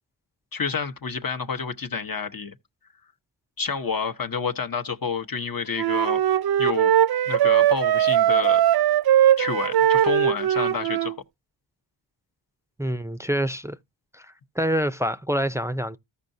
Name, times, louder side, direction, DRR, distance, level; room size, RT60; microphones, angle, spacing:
voice 1, 0.5-2.5 3.6-6.2 6.6-6.9 7.3-8.6 9.4-11.2, left 5 dB, 45° left, 1.0 m, -29 dB
Wind instrument woodwind instrument, 5.8-11.1, right 11 dB, 55° right, 0.5 m, -20 dB
voice 2, 12.8-13.8 14.1-16.0, equal, 5° right, 0.5 m, -26 dB
14.5 x 5.6 x 2.6 m
wide cardioid pair, 80°, 46 cm